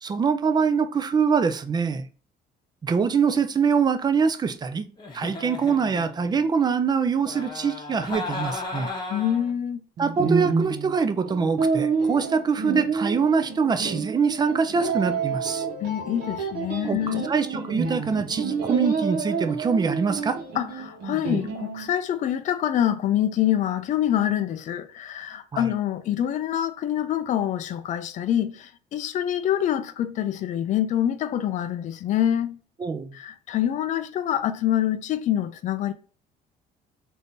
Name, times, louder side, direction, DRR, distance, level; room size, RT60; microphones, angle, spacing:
voice 1, 0.0-2.1 2.8-4.9 5.1-8.9 10.0-15.7 16.8-20.4 25.5-25.7 32.8-33.2, right 5 dB, 25° right, 0.4 m, -24 dB
Giggle, 5.0-6.5 7.2-9.5, left 3 dB, 25° left, 1.0 m, -35 dB
voice 2, 9.1-9.8 15.8-17.3 20.6-32.6 33.1-35.9, left 11 dB, 50° left, 0.4 m, -26 dB
sound 1, 10.0-21.9, right 5 dB, 65° right, 1.0 m, -28 dB
3.4 x 2.6 x 2.6 m
cardioid pair, 110°, 17 cm